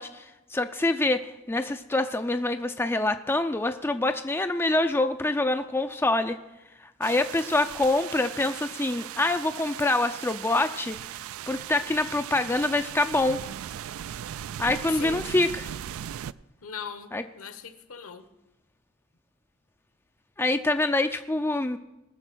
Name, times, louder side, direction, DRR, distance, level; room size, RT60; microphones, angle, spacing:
voice 1, 0.0-6.4 7.0-13.4 14.6-15.7 17.1-17.2 20.4-21.8, left 2 dB, 10° left, 7 dB, 0.4 m, -26 dB
sound 1, 7.0-16.3, right 10 dB, 65° right, 0.3 m, -38 dB
voice 2, 14.9-15.3 16.6-18.3, left 6 dB, 70° left, 9 dB, 1.1 m, -39 dB
20.0 x 6.6 x 6.2 m, 0.99 s
head